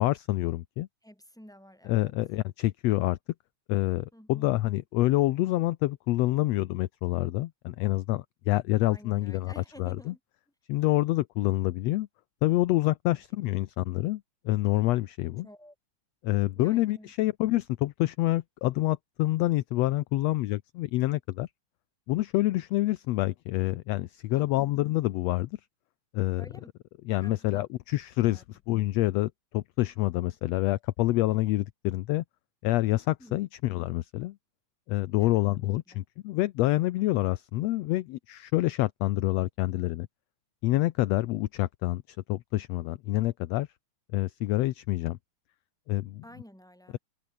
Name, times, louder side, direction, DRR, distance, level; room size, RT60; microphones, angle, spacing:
voice 1, 0.0-0.9 1.9-3.2 3.7-10.1 10.7-12.1 12.4-15.5 16.2-21.5 22.1-25.5 26.1-26.5 27.1-32.2 32.6-34.3 34.9-40.1 40.6-43.7 44.1-45.2 45.9-46.2, left 17 dB, 75° left, 1.6 m, -27 dB
voice 2, 1.0-2.2 4.1-4.6 8.8-10.2 13.5-13.7 15.4-15.8 16.6-17.1 24.3-24.6 26.4-26.7 27.2-27.6 28.2-28.4 33.2-33.4 35.2-36.0 46.2-47.0, equal, ahead, 7.3 m, -51 dB
omnidirectional pair, 3.6 m